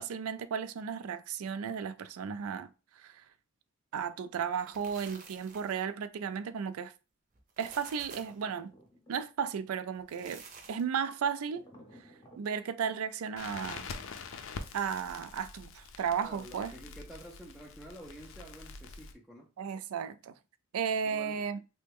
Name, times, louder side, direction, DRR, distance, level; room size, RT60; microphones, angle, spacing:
voice 1, 0.0-2.7 3.0-3.1 3.9-6.9 7.6-8.7 9.1-10.4 10.7-11.6 12.4-13.9 14.7-16.7 19.6-20.3 20.7-21.6, right 7 dB, 85° right, 0.4 m, -34 dB
sound 1, 4.4-5.9 7.3-8.4 9.9-11.0, right 5 dB, 40° right, 0.6 m, -51 dB
sound 2, 8.1-9.5 11.5-12.5, equal, 20° left, 0.7 m, -57 dB
Crackle, 13.4-19.1, left 4 dB, 65° left, 0.4 m, -45 dB
voice 2, 16.2-19.5 21.0-21.5, right 1 dB, ahead, 0.3 m, -49 dB
3.3 x 2.1 x 3.4 m
head